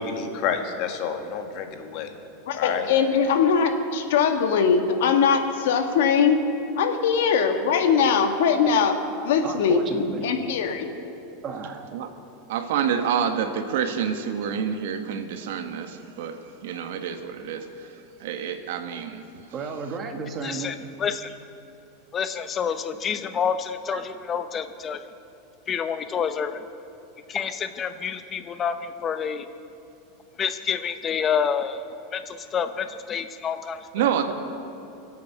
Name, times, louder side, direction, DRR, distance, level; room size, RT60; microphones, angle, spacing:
voice 1, 0.0-2.1 2.5-2.9, left 6 dB, 45° left, 5 dB, 1.6 m, -29 dB
voice 2, 2.5-6.4 6.8-10.9, left 6 dB, 75° left, 5 dB, 1.6 m, -21 dB
voice 3, 9.4-10.3 11.4-11.9 19.5-20.9 23.9-24.0, right 4 dB, 25° right, 4 dB, 1.5 m, -33 dB
voice 4, 12.5-17.7 18.2-19.2 33.9-34.3, right 8 dB, 75° right, 7 dB, 1.3 m, -27 dB
voice 5, 20.4-21.3 22.1-25.0 25.7-26.6 27.3-29.5 30.4-31.8 32.1-34.1, left 7 dB, 25° left, 10 dB, 0.7 m, -28 dB
25.0 x 8.5 x 6.0 m, 2.9 s
supercardioid pair, 150°, 0 cm